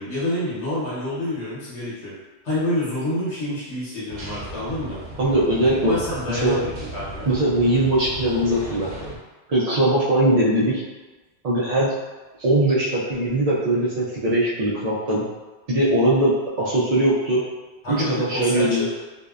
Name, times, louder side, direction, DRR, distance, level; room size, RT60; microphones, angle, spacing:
voice 1, 0.0-2.1 2.4-5.0 5.9-7.3 17.8-18.9, left 1 dB, 75° left, -9 dB, 1.2 m, -27 dB
sound 1, 4.1-9.2, right 1 dB, 85° right, 0.9 m, -36 dB
voice 2, 5.2-6.0 6.3-6.6 7.3-8.9 9.5-10.8 11.4-11.9 12.4-15.2 15.7-16.3 16.6-17.4 17.9-18.9, right 1 dB, 60° right, -7 dB, 0.4 m, -20 dB
2.6 x 2.0 x 2.3 m, 1.2 s
omnidirectional pair, 1.2 m